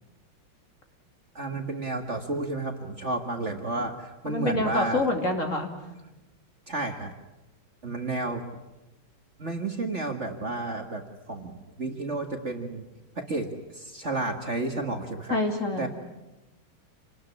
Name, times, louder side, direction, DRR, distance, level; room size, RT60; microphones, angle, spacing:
voice 1, 1.4-5.1 6.7-7.1 7.8-8.4 9.4-12.9 13.2-15.4 15.8-15.9, right 2 dB, 35° right, 5 dB, 2.0 m, -31 dB
voice 2, 4.3-5.7 15.3-15.9, left 2 dB, 35° left, 4 dB, 3.1 m, -26 dB
28.0 x 19.5 x 9.9 m, 1.0 s
omnidirectional pair, 2.3 m